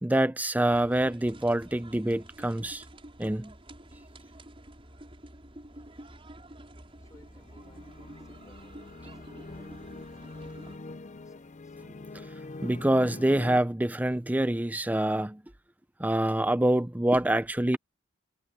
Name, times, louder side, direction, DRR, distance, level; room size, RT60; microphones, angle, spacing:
voice 1, 0.0-2.8 3.2-3.5 12.6-15.4 16.0-17.8, right 1 dB, 10° right, 0.5 m, -26 dB
sound 1, 0.7-10.8, right 1 dB, 30° right, 6.0 m, -49 dB
voice 2, 7.0-11.8, left 1 dB, 20° left, 5.5 m, -62 dB
sound 2, 7.1-13.6, left 2 dB, 40° left, 0.6 m, -44 dB
head